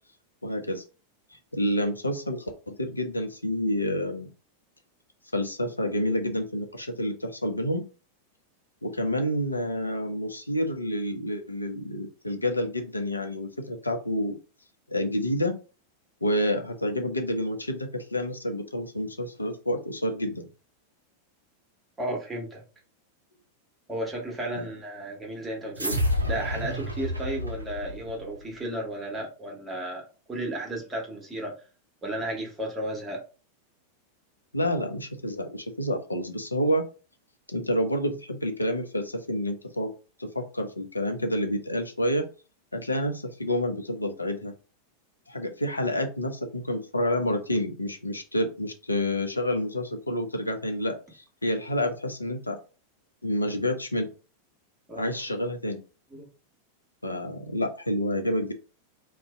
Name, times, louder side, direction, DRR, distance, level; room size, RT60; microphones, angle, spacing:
voice 1, 0.4-0.8 1.5-4.3 5.3-7.8 8.8-14.4 14.9-15.6 16.2-20.5 24.5-24.7 34.5-36.8 37.5-39.9 40.2-42.3 42.7-44.5 45.3-52.6 53.2-54.1 55.0-55.8 57.0-58.5, equal, 80° left, 5 dB, 0.5 m, -29 dB
voice 2, 22.0-22.6 23.9-26.0 26.3-30.0 30.3-31.5 32.0-33.2 54.9-55.1 56.1-56.3, right 1 dB, 15° right, -1 dB, 1.2 m, -33 dB
sound 1, 25.8-28.5, left 1 dB, 85° right, 0.5 m, -29 dB
2.5 x 2.1 x 3.5 m, 0.34 s
figure-of-eight pair, 90°, 0 cm